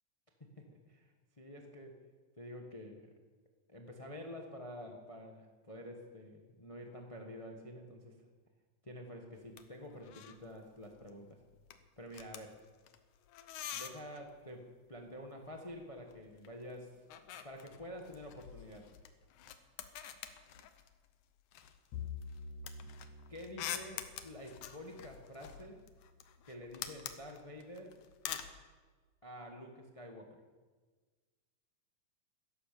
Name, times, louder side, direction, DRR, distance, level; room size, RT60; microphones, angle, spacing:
voice 1, 0.6-1.1 1.4-2.0 2.4-3.1 3.7-8.3 8.8-11.4 12.0-12.6 13.7-17.0 17.4-18.9 23.3-25.8 26.4-28.0 29.2-30.4, left 1 dB, 30° left, 2 dB, 0.6 m, -48 dB
sound 1, 9.3-9.7 9.9-10.5 10.7-11.1 11.4-14.3 15.5-16.5 16.8-21.1 21.5-28.6, left 10 dB, 85° left, 2.4 m, -47 dB
Bowed string instrument, 21.9-26.3, left 6 dB, 70° left, 2.1 m, -49 dB
16.5 x 12.5 x 6.9 m, 1.4 s
omnidirectional pair, 3.3 m